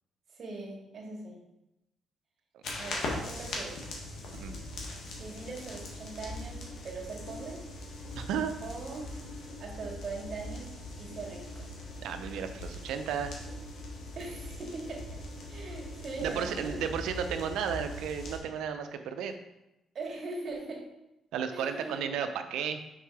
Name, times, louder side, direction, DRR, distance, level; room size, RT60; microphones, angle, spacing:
voice 1, 0.3-1.4 2.7-3.8 5.2-7.6 8.6-9.2 9.6-11.7 14.2-15.1 15.5-16.9 19.9-20.9 21.5-22.2, right 3 dB, 55° right, -2 dB, 1.9 m, -41 dB
sound 1, 2.6-18.4, left 1 dB, 75° left, 1.5 m, -41 dB
voice 2, 8.1-8.5 12.0-13.3 16.2-19.4 21.3-22.8, right 7 dB, 85° right, 8 dB, 0.5 m, -33 dB
6.4 x 3.6 x 4.7 m, 0.92 s
cardioid pair, 90°, 0 cm